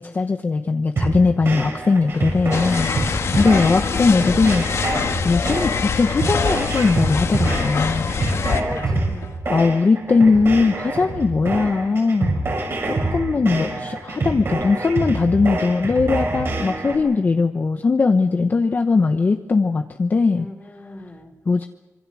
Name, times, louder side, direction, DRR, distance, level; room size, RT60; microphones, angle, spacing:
voice 1, 0.0-2.9 3.4-4.7 5.2-8.1 9.5-12.4 12.8-20.5 21.5-21.7, left 4 dB, 35° left, 6 dB, 1.0 m, -19 dB
sound 1, 1.0-17.0, right 2 dB, 50° right, 5.9 m, -26 dB
sound 2, 1.8-9.4, left 5 dB, 85° left, 3.3 m, -40 dB
sound 3, 2.5-8.6, left 5 dB, 65° left, 1.7 m, -24 dB
voice 2, 8.1-9.3 13.3-14.0 20.4-21.4, left 1 dB, 15° left, 5 dB, 3.3 m, -39 dB
26.0 x 24.5 x 6.3 m, 1.0 s
wide cardioid pair, 145°, 5 cm